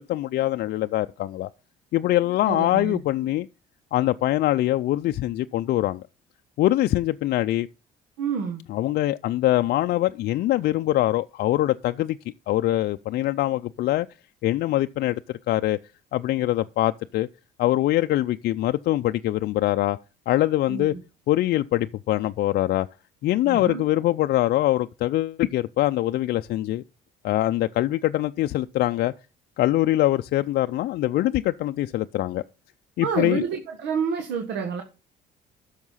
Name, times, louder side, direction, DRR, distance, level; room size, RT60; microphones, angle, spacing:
voice 1, 0.0-1.5 1.9-3.5 3.9-6.0 6.6-7.7 8.7-12.2 12.5-14.1 14.4-15.8 16.1-17.3 17.6-20.0 20.3-20.9 21.3-22.9 23.2-26.8 27.2-29.1 29.6-32.4 33.0-33.4, left 15 dB, 60° left, 0.5 m, -23 dB
voice 2, 2.4-3.0 8.2-8.6 20.7-21.0 23.4-23.8 33.0-34.8, right 6 dB, 75° right, 1.5 m, -28 dB
11.0 x 6.6 x 5.5 m
supercardioid pair, 85°, 18 cm